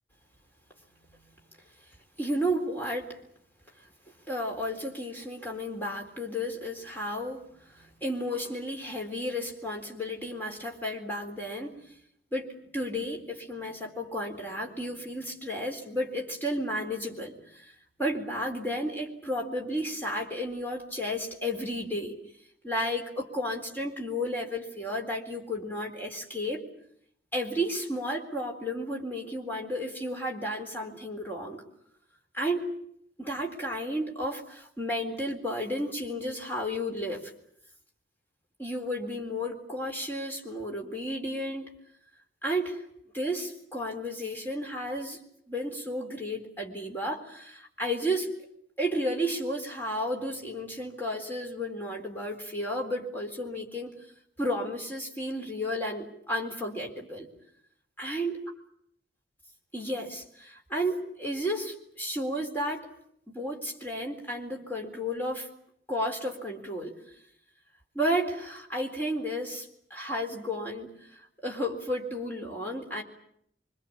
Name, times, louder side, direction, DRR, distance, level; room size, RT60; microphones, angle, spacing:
voice 1, 2.2-3.1 4.3-11.8 12.3-17.7 18.0-22.1 22.6-26.6 27.3-31.6 32.3-32.7 33.2-37.3 38.6-41.7 42.4-42.8 43.1-45.2 45.5-48.3 48.8-53.9 54.4-57.3 58.0-58.4 59.7-62.9 63.3-65.5 65.9-67.0 67.9-73.0, equal, 10° left, 0 dB, 3.9 m, -32 dB
25.5 x 25.0 x 8.6 m, 0.71 s
head